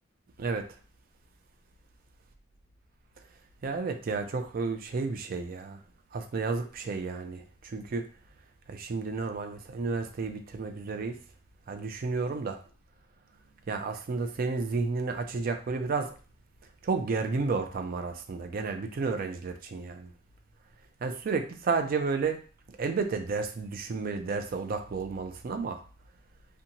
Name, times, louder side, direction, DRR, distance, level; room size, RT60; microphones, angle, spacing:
voice 1, 3.6-5.8 6.1-8.1 8.7-11.2 11.7-12.6 13.7-16.1 16.8-20.1 21.0-22.4 22.8-25.8, right 4 dB, 50° right, 0.4 m, -31 dB
2.6 x 2.2 x 2.8 m
head